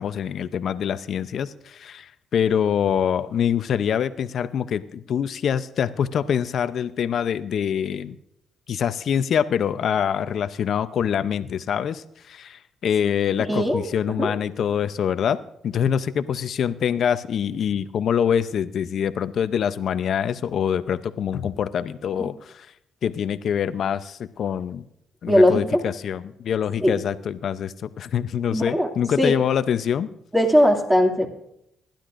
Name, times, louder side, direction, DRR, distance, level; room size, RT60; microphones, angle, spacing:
voice 1, 0.0-8.2 8.7-22.7 23.0-24.8 25.2-30.1, left 8 dB, 65° left, 13 dB, 0.6 m, -25 dB
voice 2, 13.5-14.3 22.1-22.2 25.3-25.8 26.8-27.0 28.5-28.9 29.2-29.3 30.3-31.3, equal, 10° right, 1 dB, 2.4 m, -19 dB
26.5 x 12.0 x 2.6 m, 0.79 s
cardioid pair, 90°, 0 cm